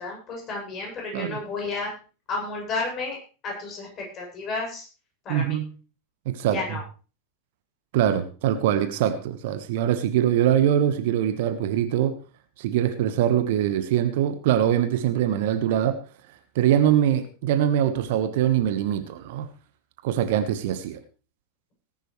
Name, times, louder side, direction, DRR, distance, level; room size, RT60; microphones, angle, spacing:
voice 1, 0.0-1.9 2.3-3.2 3.4-4.8 5.2-5.6 6.5-6.8, left 3 dB, 30° left, -1 dB, 7.7 m, -32 dB
voice 2, 5.3-5.7 6.2-6.8 7.9-12.2 12.6-16.0 16.5-19.5 20.0-21.0, right 10 dB, 50° right, 10 dB, 1.3 m, -23 dB
18.5 x 11.0 x 3.3 m, 0.35 s
figure-of-eight pair, 90°, 0 cm